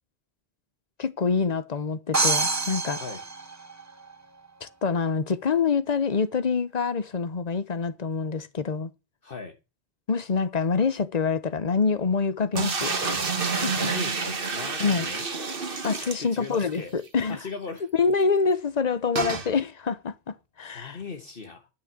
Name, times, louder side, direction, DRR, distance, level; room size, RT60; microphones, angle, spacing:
voice 1, 1.0-3.0 4.6-8.9 10.1-13.3 13.6-13.9 14.8-15.1 15.8-17.4 17.9-21.0, left 5 dB, 45° left, 1.0 m, -26 dB
sound 1, 2.1-4.1, right 3 dB, 20° right, 0.7 m, -26 dB
voice 2, 9.2-9.5 13.7-15.3 16.2-16.9 17.3-17.9 20.7-21.7, left 4 dB, 60° left, 1.5 m, -38 dB
sound 2, 12.6-16.7 17.1-17.2 17.4-17.5 19.2-19.5, right 4 dB, 60° right, 1.6 m, -29 dB
11.0 x 6.5 x 8.7 m
omnidirectional pair, 1.1 m